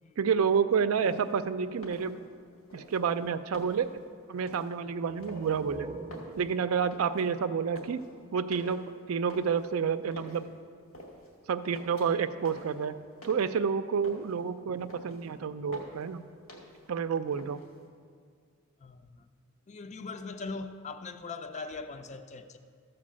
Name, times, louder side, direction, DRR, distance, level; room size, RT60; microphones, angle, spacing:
voice 1, 0.2-2.2 2.7-3.9 4.3-5.9 6.4-8.0 8.3-10.5 11.5-13.0 13.2-16.2 16.9-17.6, right 6 dB, 90° right, 0.4 m, -29 dB
sound 1, 0.9-1.3 1.7-2.4 2.7-4.0 4.4-4.7 5.2-5.7 6.0-7.3 7.5-8.1 8.5-10.4 10.9-11.4 11.6-12.2 12.5-13.6 13.9-14.4 14.7-15.3 15.7-16.1 16.5-16.9 17.2-17.9, equal, 80° left, 2.1 m, -48 dB
sound 2, 5.0-8.6, right 3 dB, 25° right, 0.6 m, -45 dB
voice 2, 18.8-19.3 19.7-22.6, left 4 dB, 35° left, 0.5 m, -40 dB
13.5 x 4.6 x 7.4 m
head